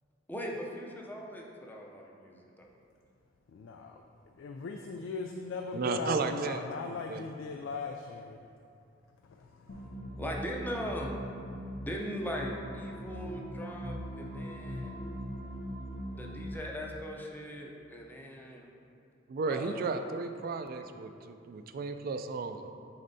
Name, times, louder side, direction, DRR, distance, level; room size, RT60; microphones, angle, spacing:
voice 1, 0.3-2.7 10.2-11.2 11.8-15.1 16.1-18.7 19.5-20.0, equal, 10° left, -1 dB, 0.6 m, -40 dB
voice 2, 3.5-4.0 4.4-8.4 9.4-9.9, left 4 dB, 85° left, 3 dB, 0.3 m, -39 dB
voice 3, 5.7-7.3 19.3-22.7, right 4 dB, 50° right, 8 dB, 0.3 m, -34 dB
sound 1, 9.7-16.5, equal, 55° left, 0.7 m, -40 dB
9.6 x 4.2 x 2.7 m, 2.5 s
head